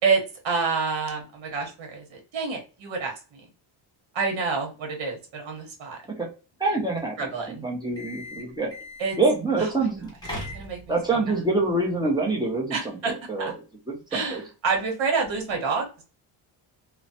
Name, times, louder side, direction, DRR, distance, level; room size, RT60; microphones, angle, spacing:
voice 1, 0.0-3.5 4.1-6.0 7.2-7.6 9.0-9.2 9.6-9.9 10.5-11.2 12.7-13.5 14.1-16.0, right 4 dB, 65° right, 2 dB, 1.1 m, -28 dB
voice 2, 6.6-7.2 7.5-8.7 9.2-10.1 10.9-13.0 13.3-13.5 13.9-14.4, right 3 dB, 10° right, -2 dB, 0.7 m, -25 dB
sound 1, 7.8-9.3 10.0-11.1, left 1 dB, 10° left, 1.2 m, -38 dB
3.0 x 2.1 x 2.6 m, 0.33 s
cardioid pair, 120°, 48 cm